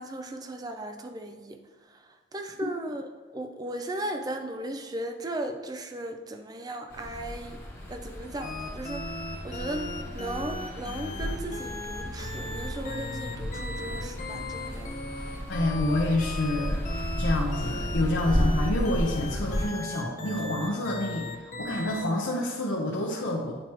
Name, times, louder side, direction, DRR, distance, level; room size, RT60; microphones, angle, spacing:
voice 1, 0.0-1.6 1.9-2.0 2.3-3.0 3.3-7.6 7.9-9.1 9.4-14.9, right 1 dB, 20° right, 6 dB, 0.4 m, -36 dB
sound 1, 6.9-19.7, equal, 15° left, 1.2 m, -33 dB
sound 2, 8.4-22.2, left 2 dB, 40° left, 0.7 m, -37 dB
voice 2, 15.5-16.8 17.2-23.6, left 1 dB, 75° left, -3 dB, 0.8 m, -28 dB
8.9 x 3.0 x 4.5 m, 1.4 s
head